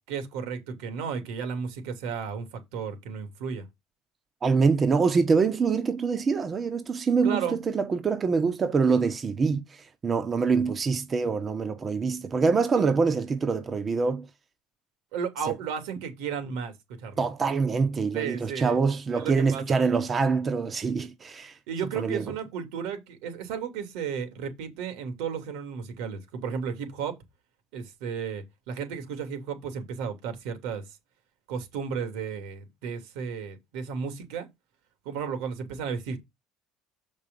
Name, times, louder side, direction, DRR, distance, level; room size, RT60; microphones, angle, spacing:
voice 1, 0.1-3.7 7.2-7.6 15.1-17.2 18.1-18.8 19.1-19.8 21.7-27.2 27.7-30.8 31.5-34.5 35.0-36.2, right 6 dB, 80° right, 2.9 m, -33 dB
voice 2, 4.4-14.3 17.2-21.6 22.0-22.2, right 5 dB, 30° right, 1.1 m, -25 dB
7.1 x 5.4 x 5.4 m
supercardioid pair, 110°, 0 cm